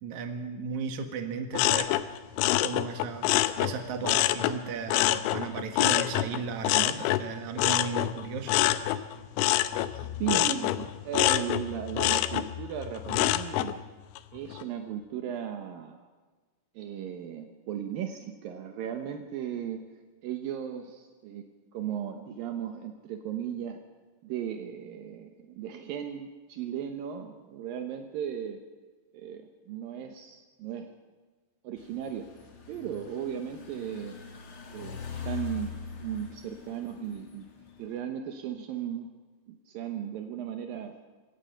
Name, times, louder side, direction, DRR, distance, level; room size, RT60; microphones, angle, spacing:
voice 1, 0.0-1.9 2.6-8.6 9.9-10.1, right 5 dB, 60° right, 6 dB, 2.2 m, -35 dB
sound 1, 1.5-4.6 4.9-13.7 14.2-14.6, left 15 dB, 85° left, 3.3 m, -26 dB
voice 2, 9.9-13.9 14.3-16.1 16.8-19.8 20.2-23.8 24.2-28.6 29.1-30.9 31.6-32.3 32.7-34.2 34.7-35.7 36.0-37.5 37.8-39.1 39.5-41.0, right 9 dB, 80° right, 5 dB, 2.0 m, -36 dB
sound 2, 31.8-38.0, left 8 dB, 50° left, 1.7 m, -42 dB
26.5 x 17.0 x 5.8 m, 1.4 s
omnidirectional pair, 5.6 m